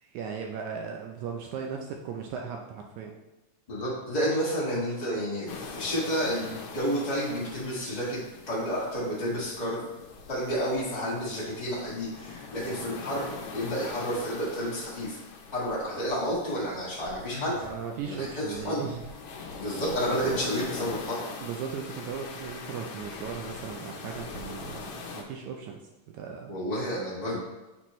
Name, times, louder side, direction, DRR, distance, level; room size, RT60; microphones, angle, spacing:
voice 1, 0.0-3.2 17.6-19.1 21.4-25.8 26.1-26.5, right 6 dB, 80° right, 1 dB, 1.9 m, -37 dB
voice 2, 3.7-8.2 8.5-9.8 10.3-15.2 15.5-17.5 18.0-18.8 19.6-21.2 26.5-27.4, equal, 20° left, -8 dB, 1.0 m, -30 dB
sound 1, 5.5-25.2, left 4 dB, 70° left, 1.9 m, -42 dB
Sigh, 17.3-17.8, left 2 dB, 50° left, 0.9 m, -41 dB
8.1 x 4.4 x 3.1 m, 1.1 s
omnidirectional pair, 3.5 m